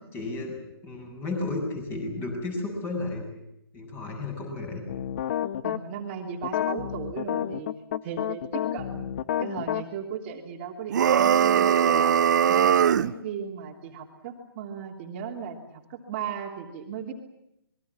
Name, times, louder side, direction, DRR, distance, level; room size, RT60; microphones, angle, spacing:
voice 1, 0.1-0.6 0.8-3.2 3.7-4.8, left 2 dB, 15° left, 3 dB, 7.3 m, -32 dB
sound 1, 4.9-5.8 6.4-9.8, left 11 dB, 35° left, 0.9 m, -30 dB
voice 2, 5.6-7.7 8.0-9.1 9.4-12.2 12.5-17.1, right 7 dB, 30° right, 2 dB, 3.1 m, -36 dB
sound 2, 10.9-13.1, right 8 dB, 45° right, 0.9 m, -20 dB
27.0 x 22.0 x 7.4 m, 0.83 s
hypercardioid pair, 150°, 13 cm